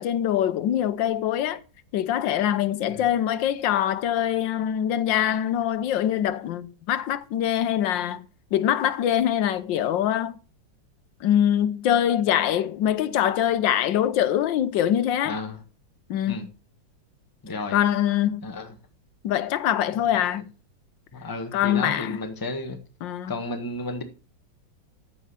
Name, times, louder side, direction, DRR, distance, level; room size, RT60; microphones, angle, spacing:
voice 1, 0.0-1.6 1.9-8.3 8.5-10.4 11.2-15.4 16.1-16.5 17.5-18.5 19.2-20.4 21.5-22.2 23.0-23.4, left 10 dB, 75° left, 1.4 m, -24 dB
voice 2, 15.2-15.6 16.3-16.4 17.4-17.8 18.4-18.7 20.2-20.3 21.1-22.8 23.3-24.0, left 2 dB, 10° left, 1.3 m, -33 dB
14.5 x 5.5 x 5.6 m
omnidirectional pair, 2.1 m